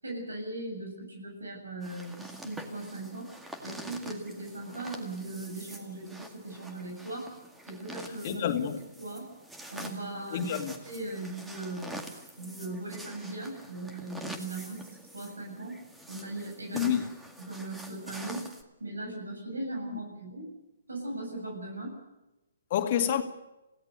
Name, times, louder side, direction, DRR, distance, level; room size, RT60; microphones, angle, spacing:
voice 1, 0.0-3.3 3.6-7.3 7.7-8.4 9.0-9.3 9.7-10.5 10.8-12.1 12.4-15.8 16.1-17.0 17.5-18.4 18.8-20.5 20.9-21.9, right 2 dB, 90° right, 7.9 m, -38 dB
sound 1, 1.8-18.6, right 1 dB, 5° right, 2.0 m, -46 dB
voice 2, 8.2-8.8 10.3-10.7 16.7-17.0 22.7-23.2, left 9 dB, 45° left, 2.3 m, -28 dB
28.5 x 17.0 x 6.7 m
hypercardioid pair, 135°, 0 cm